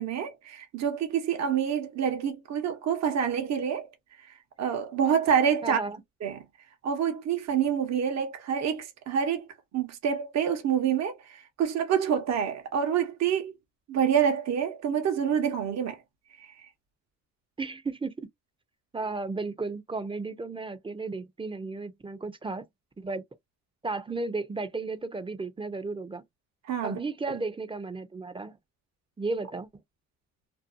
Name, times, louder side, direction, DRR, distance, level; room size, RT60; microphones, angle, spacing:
voice 1, 0.0-3.9 4.6-5.8 6.2-6.4 6.8-9.5 9.7-13.5 13.9-16.0 26.7-27.0, right 8 dB, 60° right, 0.8 m, -27 dB
voice 2, 5.6-6.0 17.6-18.1 18.9-22.6 23.0-23.2 23.8-26.2 26.8-28.6 29.2-29.7, right 3 dB, 15° right, 0.5 m, -34 dB
2.6 x 2.2 x 2.5 m
cardioid pair, 90°, 30 cm